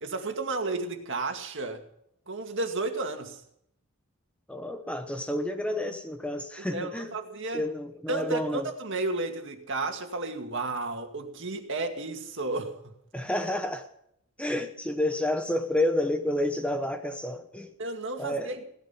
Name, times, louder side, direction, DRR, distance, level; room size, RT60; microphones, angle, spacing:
voice 1, 0.0-1.8 2.3-3.4 6.6-7.6 8.1-12.7 17.8-18.6, right 2 dB, 55° right, 5 dB, 2.2 m, -32 dB
voice 2, 4.5-7.1 7.5-8.7 13.1-13.9 14.4-17.7 18.2-18.6, left 1 dB, 5° left, 6 dB, 1.0 m, -30 dB
17.0 x 12.5 x 5.8 m, 0.72 s
head